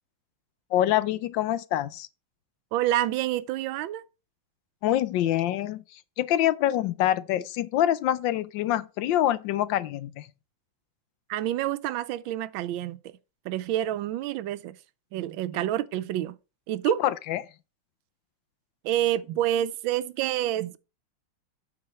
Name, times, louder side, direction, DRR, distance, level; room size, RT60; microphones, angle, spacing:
voice 1, 0.7-2.1 4.8-10.3 16.9-17.4, left 12 dB, 75° left, 1.2 m, -26 dB
voice 2, 2.7-4.0 11.3-13.0 13.4-14.8 15.1-16.3 16.7-17.0 18.8-20.8, right 13 dB, 75° right, 1.3 m, -28 dB
8.7 x 4.5 x 5.6 m
omnidirectional pair, 2.2 m